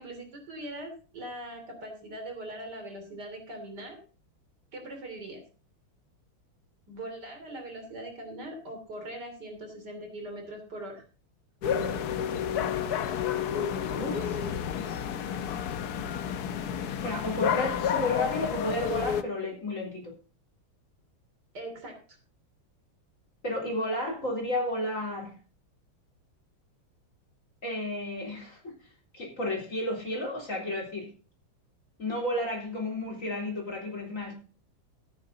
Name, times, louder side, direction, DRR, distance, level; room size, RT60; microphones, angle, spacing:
voice 1, 0.0-4.0 4.7-5.4 6.9-11.0 21.5-22.0, right 1 dB, 50° right, 4 dB, 3.5 m, -41 dB
sound 1, 11.6-19.2, left 8 dB, 60° left, 1.1 m, -30 dB
voice 2, 13.9-14.5 17.0-20.1 23.4-25.3 27.6-28.7 29.1-31.1 32.0-34.3, left 1 dB, 40° left, -1 dB, 4.1 m, -32 dB
13.5 x 9.5 x 3.9 m, 0.38 s
omnidirectional pair, 2.3 m